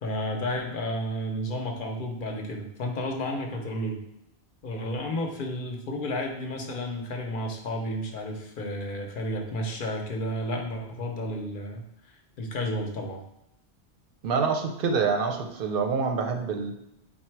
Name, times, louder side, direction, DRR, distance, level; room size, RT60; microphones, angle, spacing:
voice 1, 0.0-4.0 4.6-11.8 12.4-13.2, left 1 dB, 55° left, 2 dB, 0.7 m, -32 dB
voice 2, 14.2-16.7, right 5 dB, 60° right, 4 dB, 0.7 m, -26 dB
4.0 x 2.1 x 4.4 m, 0.81 s
omnidirectional pair, 1.2 m